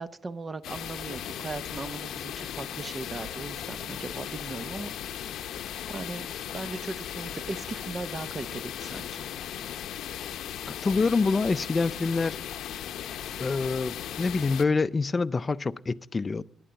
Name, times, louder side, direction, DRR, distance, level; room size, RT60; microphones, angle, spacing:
voice 1, 0.0-5.4 5.9-6.3 6.5-9.3, right 3 dB, 30° right, 0.6 m, -38 dB
sound 1, 0.6-14.6, left 10 dB, 75° left, 0.7 m, -37 dB
voice 2, 10.7-12.4 13.4-16.4, left 4 dB, 30° left, 0.5 m, -26 dB
11.0 x 10.0 x 6.8 m
cardioid pair, 90°, 0 cm